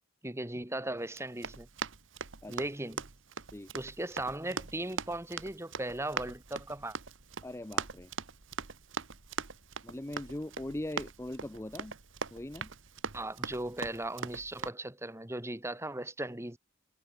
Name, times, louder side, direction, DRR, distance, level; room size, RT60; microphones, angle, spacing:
voice 1, 0.2-1.7 2.5-3.1 3.7-7.0 13.1-16.6, right 1 dB, 10° right, 1.6 m, -37 dB
Run, 1.1-14.7, right 5 dB, 60° right, 1.3 m, -41 dB
sound 1, 5.9-14.2, right 1 dB, 85° right, 3.9 m, -64 dB
voice 2, 7.4-8.1 9.8-11.9 12.3-12.7, left 1 dB, 10° left, 0.5 m, -40 dB
head